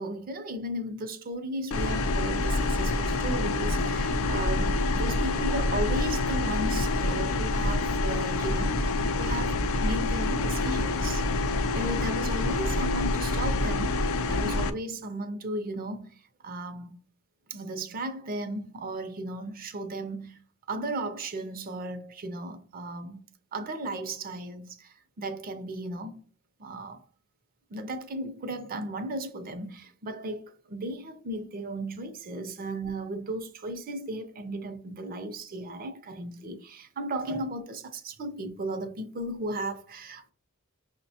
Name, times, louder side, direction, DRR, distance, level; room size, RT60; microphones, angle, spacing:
voice 1, 0.0-11.3 11.7-16.2 16.4-17.0 17.5-20.4 20.7-26.2 26.6-27.0 27.7-40.3, right 1 dB, 40° right, 0.5 m, -35 dB
sound 1, 1.7-14.7, left 2 dB, 70° left, 0.4 m, -27 dB
6.0 x 2.1 x 2.7 m
head